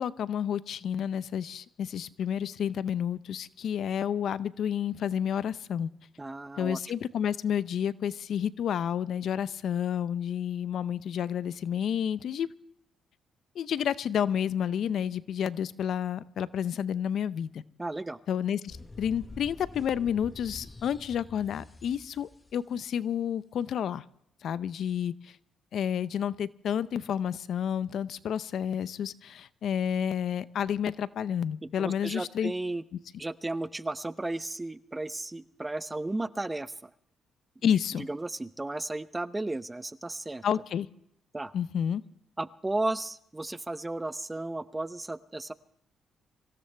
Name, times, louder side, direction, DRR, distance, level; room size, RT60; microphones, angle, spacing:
voice 1, 0.0-5.9 6.6-12.5 13.6-17.6 18.3-24.0 24.4-25.3 25.7-32.5 37.6-38.1 40.4-40.9 41.5-42.0, left 8 dB, 65° left, 16 dB, 0.6 m, -30 dB
voice 2, 6.2-6.8 17.8-18.2 31.6-32.8 33.2-36.9 37.6-37.7 38.0-40.4 41.3-41.5 42.4-45.5, right 2 dB, 15° right, 14 dB, 0.7 m, -34 dB
sound 1, 18.7-22.6, left 2 dB, 20° left, 1.1 m, -47 dB
25.5 x 16.5 x 3.4 m, 0.75 s
cardioid pair, 90°, 0 cm